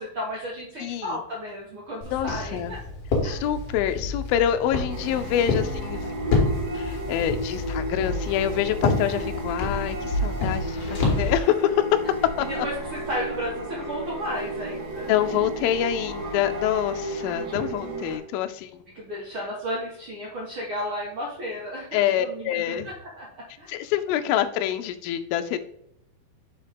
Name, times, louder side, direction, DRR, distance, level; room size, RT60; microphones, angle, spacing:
voice 1, 0.0-2.8 3.2-3.4 10.4-11.3 12.5-15.2 16.9-17.6 18.9-21.9 22.2-23.3 23.6-23.7, equal, 85° right, -4 dB, 1.1 m, -34 dB
voice 2, 0.8-1.2 2.1-2.8 3.2-6.1 6.7-12.0 12.4-12.7 15.1-18.8 21.9-22.9 23.7-25.6, left 11 dB, 80° left, 9 dB, 2.2 m, -26 dB
Walk footsteps, 2.0-11.4, left 3 dB, 50° left, 2.1 m, -28 dB
sound 1, 4.9-18.2, right 2 dB, 60° right, 3.1 m, -33 dB
6.3 x 4.3 x 5.1 m, 0.73 s
omnidirectional pair, 4.6 m